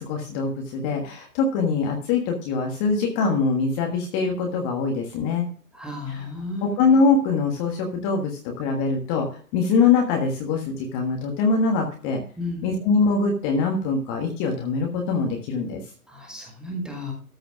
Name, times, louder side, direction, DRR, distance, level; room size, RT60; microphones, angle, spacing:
voice 1, 0.0-5.5 6.0-6.3 6.6-9.3 9.5-12.2 12.6-15.8, left 4 dB, 20° left, 2 dB, 1.5 m, -23 dB
voice 2, 5.7-6.8 12.4-12.7 16.1-17.1, left 2 dB, ahead, 1 dB, 1.7 m, -33 dB
13.5 x 4.9 x 6.0 m, 0.41 s
figure-of-eight pair, 140°, 45 cm